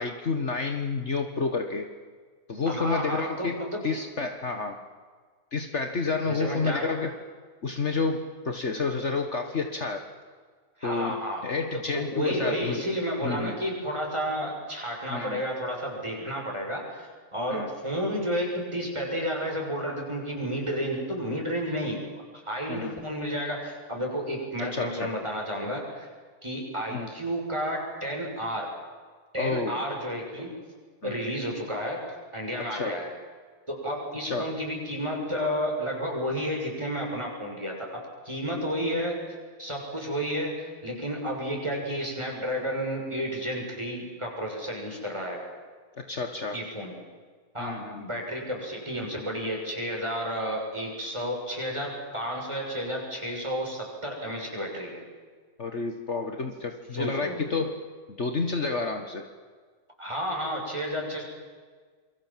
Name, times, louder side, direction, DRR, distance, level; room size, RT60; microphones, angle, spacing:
voice 1, 0.0-1.9 2.5-3.6 3.8-4.8 5.5-7.1 7.6-10.1 10.8-11.2 11.4-12.8 13.2-13.5 15.1-15.4 17.5-17.7 22.7-23.0 24.6-25.1 26.9-27.1 29.4-29.8 31.0-31.4 32.7-33.0 34.2-34.5 46.1-46.6 47.6-48.0 55.6-57.7 58.2-59.2, left 4 dB, 50° left, 5 dB, 1.8 m, -30 dB
voice 2, 2.6-3.8 6.3-6.9 10.8-11.4 11.9-22.0 22.3-26.1 26.4-28.7 29.3-30.5 31.0-32.0 32.3-33.1 33.7-45.4 46.5-46.9 47.5-55.1 56.9-57.5 60.0-61.2, equal, 20° right, 0 dB, 6.7 m, -31 dB
28.0 x 23.5 x 7.5 m, 1.5 s
omnidirectional pair, 1.6 m